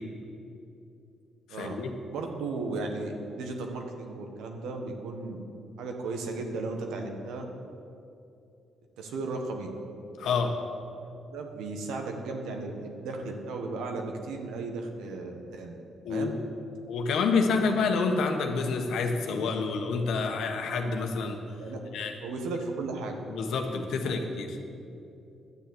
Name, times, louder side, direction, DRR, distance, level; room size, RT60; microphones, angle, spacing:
voice 1, 1.5-1.9 10.2-10.5 16.0-16.4 16.9-21.4 21.9-22.1 23.3-24.6, left 4 dB, 75° left, 4 dB, 1.3 m, -28 dB
voice 2, 2.1-5.4 5.8-7.5 9.0-9.7 10.2-10.5 11.0-15.8 16.1-16.3 19.3-19.7 21.6-21.8 22.2-23.2 24.0-24.2, right 3 dB, 85° right, 3 dB, 1.4 m, -35 dB
11.5 x 7.2 x 7.9 m, 2.7 s
cardioid pair, 90°, 0 cm